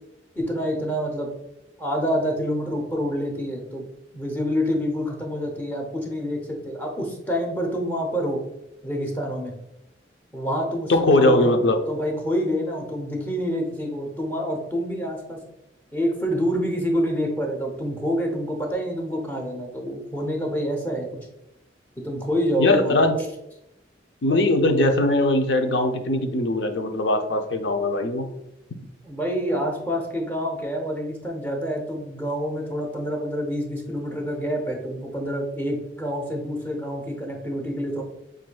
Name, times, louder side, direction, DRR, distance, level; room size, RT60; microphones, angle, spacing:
voice 1, 0.4-1.3 1.8-3.8 4.1-8.4 8.8-9.5 10.3-11.5 11.9-15.4 15.9-21.1 22.0-23.0 29.0-38.0, equal, 10° left, 1 dB, 0.7 m, -27 dB
voice 2, 10.9-11.8 22.6-23.2 24.2-28.3, left 1 dB, 85° left, 6 dB, 0.6 m, -20 dB
7.4 x 2.6 x 2.3 m, 0.89 s
head